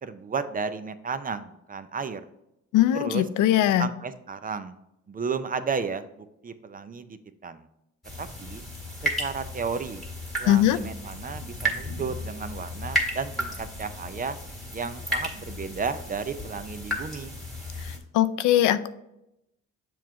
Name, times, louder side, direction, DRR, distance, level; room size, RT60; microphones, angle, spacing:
voice 1, 0.0-2.2 2.9-3.2 3.8-4.7 5.1-7.7 8.2-8.6 9.0-10.0 10.4-14.4 14.7-17.3, right 5 dB, 30° right, 11 dB, 0.5 m, -33 dB
voice 2, 2.7-3.9 10.5-10.8 17.8-18.9, left 12 dB, 85° left, 12 dB, 0.5 m, -21 dB
sound 1, 8.0-18.0, equal, ahead, 1.8 m, -33 dB
7.1 x 3.1 x 4.7 m, 0.86 s
cardioid pair, 90°, 30 cm